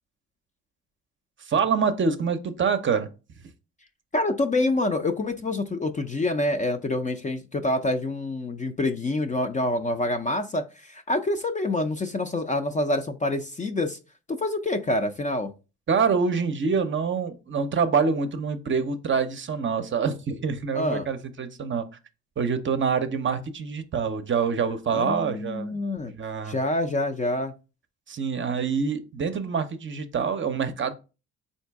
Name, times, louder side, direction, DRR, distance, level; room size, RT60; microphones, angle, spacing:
voice 1, 1.4-3.1 15.9-21.9 22.4-25.8 26.0-26.6 28.1-30.9, right 5 dB, 40° right, 0.6 m, -26 dB
voice 2, 4.1-14.0 14.3-15.5 20.7-21.1 24.9-26.1 26.5-27.5, left 2 dB, 25° left, 0.4 m, -26 dB
3.7 x 2.7 x 3.4 m
supercardioid pair, 65°, 31 cm